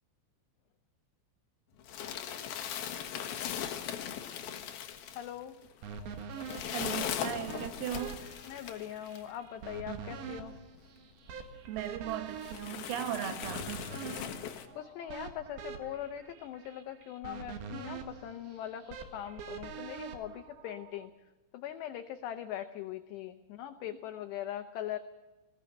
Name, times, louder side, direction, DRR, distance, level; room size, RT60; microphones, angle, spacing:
sound 1, 1.8-9.3 10.1-10.2 10.5-10.6 11.3-11.4 11.8-11.9 12.4-14.7, left 9 dB, 65° left, 2.5 m, -39 dB
voice 1, 5.2-5.6 8.5-10.5 14.8-21.1 21.5-25.0, left 11 dB, 80° left, 8 dB, 2.5 m, -41 dB
sound 2, 5.8-21.1, right 6 dB, 60° right, 3.0 m, -45 dB
voice 2, 6.7-8.3 11.7-13.8, right 11 dB, 80° right, 9 dB, 4.1 m, -37 dB
21.0 x 17.5 x 7.8 m, 1.2 s
omnidirectional pair, 5.9 m